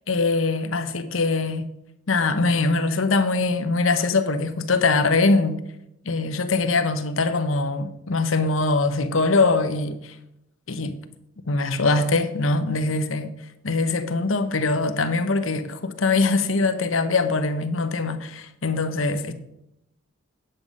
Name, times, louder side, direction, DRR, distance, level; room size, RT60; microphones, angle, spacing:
voice 1, 0.1-1.7 2.1-5.6 6.0-10.1 10.7-11.0 11.5-13.3 13.6-19.3, left 3 dB, 80° left, 0.9 m, -22 dB
9.3 x 7.7 x 5.3 m
head